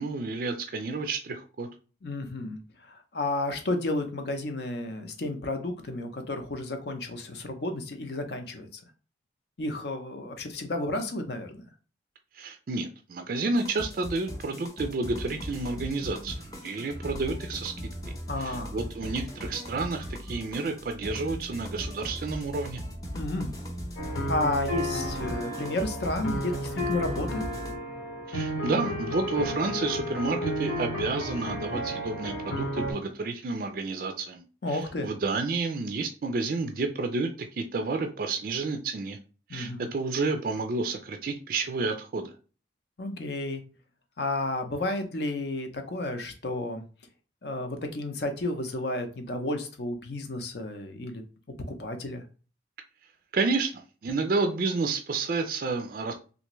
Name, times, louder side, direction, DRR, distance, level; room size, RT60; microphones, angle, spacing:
voice 1, 0.0-1.7 12.3-17.7 18.4-22.8 28.3-39.2 39.5-42.3 53.3-56.1, right 3 dB, 50° right, 6 dB, 0.3 m, -30 dB
voice 2, 2.0-2.6 2.9-8.7 9.6-11.6 18.3-18.8 23.1-23.5 24.3-27.5 34.6-35.1 39.5-39.9 43.0-43.6 44.2-46.8 47.4-51.2 51.7-52.2, left 2 dB, 60° left, 6 dB, 0.6 m, -32 dB
sound 1, 13.5-27.7, equal, 20° left, 0.6 m, -38 dB
sound 2, 24.0-32.9, equal, 85° left, 1.1 m, -32 dB
3.4 x 2.5 x 3.0 m, 0.36 s
head